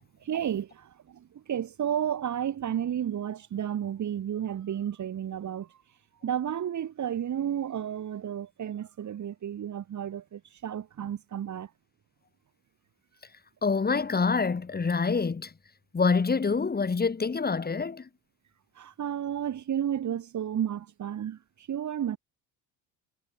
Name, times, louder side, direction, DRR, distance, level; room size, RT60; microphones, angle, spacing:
voice 1, 0.2-5.7 6.2-11.7 18.8-22.2, right 9 dB, 40° right, 2.8 m, -32 dB
voice 2, 13.6-15.5 15.9-18.1, left 4 dB, 20° left, 4.6 m, -26 dB
cardioid pair, 120°, 42 cm